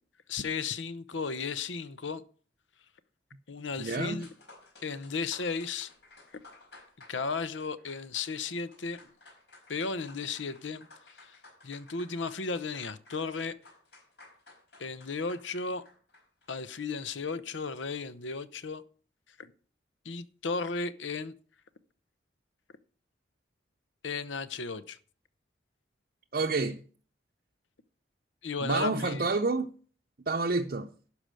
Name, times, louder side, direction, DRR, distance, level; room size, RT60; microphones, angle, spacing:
voice 1, 0.3-2.2 3.5-4.3 4.8-5.9 7.1-9.0 9.7-10.9 11.2-11.4 11.6-13.5 14.8-15.8 16.5-18.8 19.4-19.5 20.0-21.3 24.0-25.0 28.4-29.3, left 4 dB, 85° left, 0.8 m, -34 dB
voice 2, 3.8-4.2 26.3-26.8 28.6-29.7 30.3-30.9, right 3 dB, 50° right, 0.6 m, -29 dB
sound 1, 4.1-17.0, left 2 dB, 65° left, 4.9 m, -56 dB
12.0 x 4.9 x 7.6 m
head